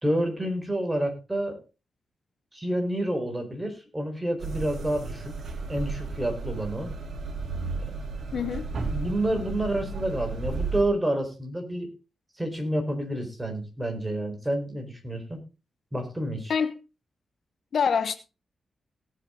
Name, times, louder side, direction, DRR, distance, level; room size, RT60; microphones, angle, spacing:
voice 1, 0.0-1.6 2.5-5.3 5.7-6.9 7.8-7.9 8.9-11.9 12.4-15.4 15.9-16.5, right 1 dB, 10° right, 4.2 m, -29 dB
sound 1, 4.4-10.8, right 4 dB, 65° right, 2.9 m, -33 dB
voice 2, 8.3-8.7 16.5-16.7 17.7-18.2, left 6 dB, 65° left, 1.1 m, -25 dB
18.0 x 7.9 x 3.7 m
wide cardioid pair, 110°, 0 cm